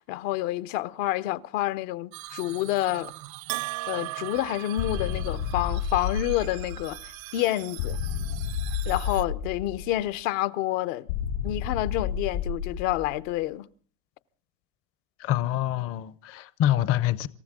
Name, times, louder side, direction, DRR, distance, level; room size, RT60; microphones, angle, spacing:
voice 1, 0.0-3.1 3.9-7.0 7.3-8.0 8.8-11.1 11.4-13.6, left 15 dB, 70° left, 1.0 m, -28 dB
sound 1, 2.1-9.2, right 18 dB, 85° right, 1.1 m, -43 dB
Bell, 3.5-5.6, right 22 dB, 65° right, 0.7 m, -36 dB
sound 2, 4.8-7.1 7.8-10.1 11.1-13.3, left 7 dB, 85° left, 7.5 m, -31 dB
voice 2, 15.2-17.3, left 12 dB, 35° left, 0.7 m, -26 dB
26.5 x 14.5 x 3.7 m
supercardioid pair, 150°, 40 cm